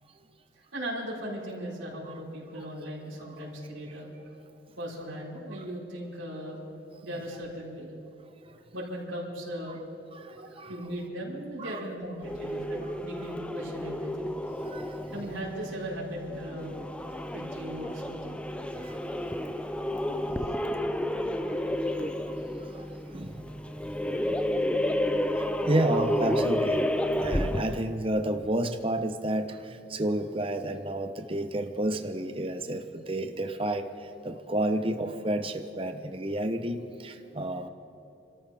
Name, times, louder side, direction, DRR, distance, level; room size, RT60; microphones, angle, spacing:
voice 1, 0.5-4.1 4.8-6.6 7.0-7.9 8.7-9.8 10.4-14.3 15.1-16.8 17.3-18.4, equal, 80° right, -6 dB, 4.2 m, -38 dB
voice 2, 10.1-10.7 11.6-11.8 14.6-15.1 18.8-19.0 19.4-19.6 21.4-21.5 22.2-22.3 22.7-23.5 23.8-23.9 24.2-24.4 25.4-26.9 27.2-37.7, right 1 dB, 30° right, 7 dB, 0.8 m, -31 dB
sound 1, 12.2-27.9, left 1 dB, 5° left, 0.4 m, -31 dB
29.5 x 13.5 x 3.5 m, 2.9 s
head